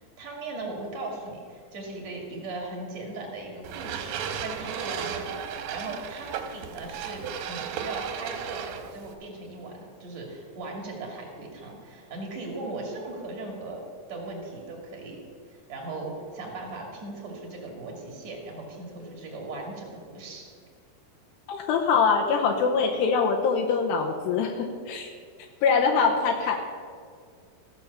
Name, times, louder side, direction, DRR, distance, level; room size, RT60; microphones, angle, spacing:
voice 1, 0.2-15.2 15.5-20.4 26.4-26.7, right 2 dB, 45° right, 1 dB, 2.8 m, -38 dB
sound 1, 3.6-9.1, right 7 dB, 80° right, 3.0 m, -35 dB
voice 2, 21.5-25.1 25.6-26.6, left 5 dB, 80° left, 2 dB, 2.8 m, -23 dB
15.5 x 6.9 x 6.9 m, 2.1 s
omnidirectional pair, 5.1 m